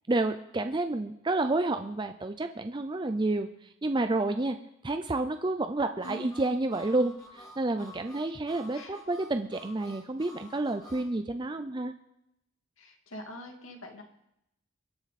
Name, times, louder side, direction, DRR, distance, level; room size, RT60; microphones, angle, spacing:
voice 1, 0.1-3.5 3.8-4.6 4.8-11.9, right 2 dB, 20° right, 8 dB, 0.5 m, -30 dB
Harmonica, 6.0-11.1, left 1 dB, 20° left, 2.5 m, -51 dB
voice 2, 12.8-14.0, equal, 85° left, 3 dB, 2.4 m, -44 dB
22.5 x 8.9 x 4.2 m, 0.81 s
head